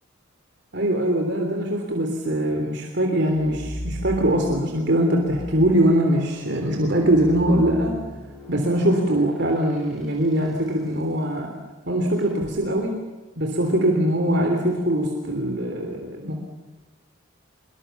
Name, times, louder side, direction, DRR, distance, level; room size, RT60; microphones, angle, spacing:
voice 1, 0.7-8.0 8.5-11.5 11.9-13.0 13.4-16.4, right 1 dB, 55° right, 2 dB, 3.4 m, -22 dB
sound 1, 3.3-4.7 5.2-10.7 12.2-12.5, equal, ahead, 7.4 m, -38 dB
25.5 x 23.5 x 7.2 m, 1.2 s
head